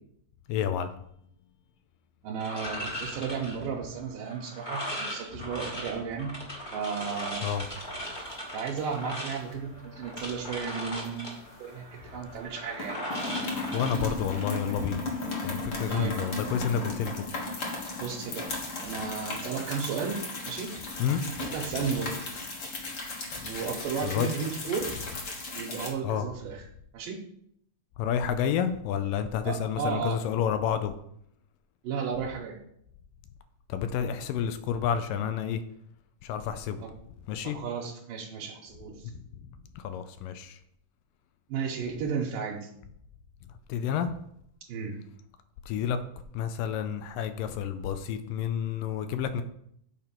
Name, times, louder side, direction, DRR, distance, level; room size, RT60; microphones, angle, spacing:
voice 1, 0.5-0.9 7.4-7.6 13.7-15.1 15.4-17.2 21.0-21.2 23.3-23.5 24.0-24.3 26.0-26.3 28.0-30.9 33.7-35.6 36.2-36.8 37.3-37.6 39.1-39.2 39.8-40.6 43.7-44.1 45.7-46.0 46.3-49.4, left 8 dB, 80° left, 10 dB, 2.2 m, -29 dB
voice 2, 2.2-6.3 6.7-7.4 8.5-13.0 15.9-16.2 18.0-18.5 18.8-20.2 20.4-20.7 21.4-22.2 23.4-24.9 25.5-26.7 26.9-27.2 29.4-30.2 31.8-32.6 36.8-36.9 37.4-39.1 41.5-42.7 44.7-45.0, right 6 dB, 75° right, -3 dB, 2.6 m, -34 dB
sound 1, 2.4-14.7, equal, 25° left, 0.9 m, -39 dB
sound 2, 7.2-7.9 8.2-8.4 8.8-9.6 10.1-12.1 12.3-12.5 12.7-25.9, left 3 dB, 55° left, 1.2 m, -36 dB
8.8 x 4.4 x 5.9 m, 0.71 s
omnidirectional pair, 4.0 m